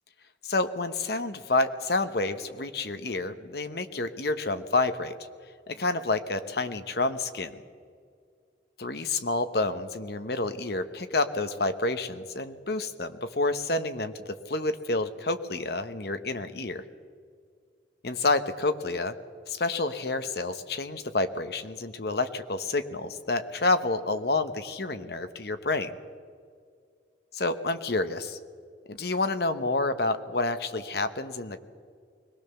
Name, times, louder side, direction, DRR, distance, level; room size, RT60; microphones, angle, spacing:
voice 1, 0.4-5.1 5.7-7.6 8.8-16.8 18.0-19.1 19.5-25.9 27.3-28.4 28.9-31.6, left 2 dB, 55° left, 10 dB, 1.0 m, -29 dB
22.0 x 18.0 x 7.0 m, 2.2 s
head